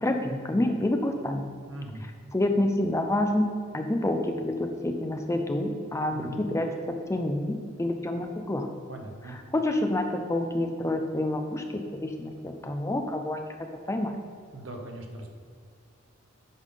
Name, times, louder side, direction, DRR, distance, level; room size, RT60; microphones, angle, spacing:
voice 1, 0.0-1.5 2.3-8.7 9.3-13.5 13.9-14.1, left 1 dB, 15° left, 5 dB, 0.4 m, -28 dB
voice 2, 1.7-2.0 6.1-6.4 8.9-9.4 14.5-15.3, right 1 dB, 70° right, 3 dB, 1.0 m, -40 dB
8.1 x 3.8 x 5.4 m, 2.1 s
head